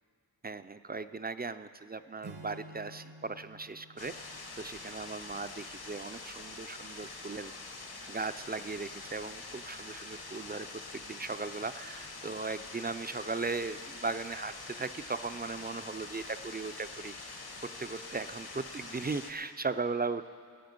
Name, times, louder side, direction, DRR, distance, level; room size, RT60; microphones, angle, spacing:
voice 1, 0.4-4.2 4.6-7.5 8.1-20.3, right 4 dB, 25° right, 12 dB, 0.4 m, -38 dB
Acoustic guitar / Strum, 2.2-5.7, right 2 dB, 75° right, 1.1 m, -51 dB
sound 1, 4.0-19.3, left 3 dB, 65° left, 1.4 m, -45 dB
19.5 x 8.6 x 5.3 m, 2.2 s
wide cardioid pair, 80°, 40 cm